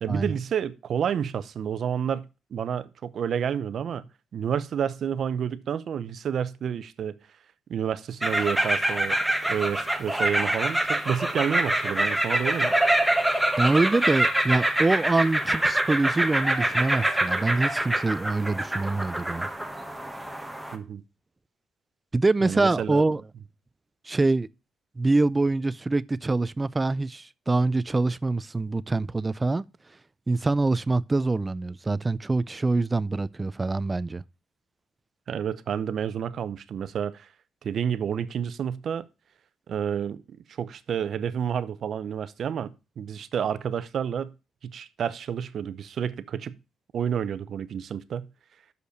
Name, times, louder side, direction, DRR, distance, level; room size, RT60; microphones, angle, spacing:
voice 1, 0.0-4.0 4.3-7.2 7.7-12.7 20.7-21.0 22.4-23.0 35.3-37.3 37.6-39.1 39.7-44.3 44.6-46.6 46.9-48.3, right 8 dB, 60° right, 0.7 m, -30 dB
sound 1, 8.2-20.7, right 1 dB, 5° right, 1.3 m, -25 dB
voice 2, 13.6-19.5 22.1-23.2 24.1-24.5 25.0-29.7 30.3-34.2, right 3 dB, 20° right, 0.4 m, -25 dB
6.6 x 5.2 x 6.5 m
cardioid pair, 90°, 0 cm